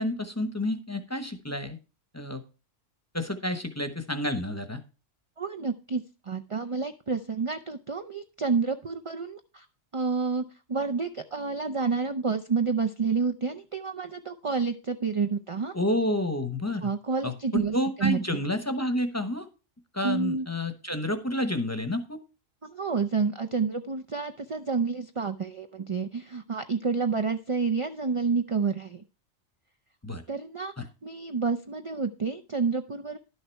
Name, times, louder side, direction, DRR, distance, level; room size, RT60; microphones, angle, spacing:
voice 1, 0.0-1.8 2.1-2.4 3.1-4.8 15.7-16.9 17.2-19.5 19.9-22.2 30.0-30.2 30.8-30.9, left 1 dB, 15° left, 8 dB, 0.8 m, -29 dB
voice 2, 5.4-9.7 9.9-15.7 16.8-18.4 20.0-20.5 22.6-29.0 30.3-30.7 31.0-33.2, right 5 dB, 45° right, 6 dB, 0.4 m, -29 dB
11.5 x 6.6 x 4.5 m, 0.32 s
omnidirectional pair, 1.3 m